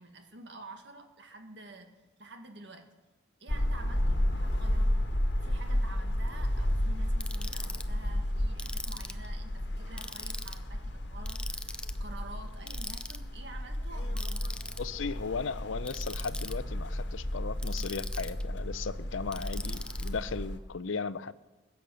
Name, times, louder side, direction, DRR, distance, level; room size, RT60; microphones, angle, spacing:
voice 1, 0.0-1.9 2.2-2.9 3.4-14.6 16.9-17.0, right 2 dB, 60° right, 5 dB, 1.9 m, -49 dB
sound 1, 3.5-20.6, left 1 dB, 60° left, 1.6 m, -32 dB
Ratchet pawl, 7.2-7.8 8.6-9.3 10.0-10.6 11.3-12.0 12.7-13.2 14.2-14.8 15.8-16.5 17.6-18.4 19.3-20.1, left 2 dB, 5° left, 0.5 m, -40 dB
voice 2, 14.8-21.3, left 5 dB, 85° left, 16 dB, 0.6 m, -36 dB
21.0 x 8.4 x 6.4 m, 1.1 s
head